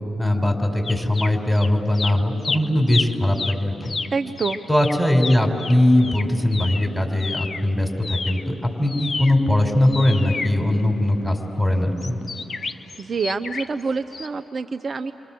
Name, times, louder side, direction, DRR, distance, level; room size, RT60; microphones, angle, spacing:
voice 1, 0.2-3.9 4.7-12.2, left 1 dB, ahead, 4 dB, 5.3 m, -20 dB
sound 1, 0.8-1.7 1.9-7.7 8.0-11.3 12.0-13.8 14.1-14.3, left 4 dB, 50° left, 1.2 m, -31 dB
voice 2, 4.1-4.6 12.6-12.7 13.0-15.1, right 4 dB, 50° right, 8 dB, 0.8 m, -27 dB
29.0 x 25.5 x 7.8 m, 2.8 s
hypercardioid pair, 40°, 0 cm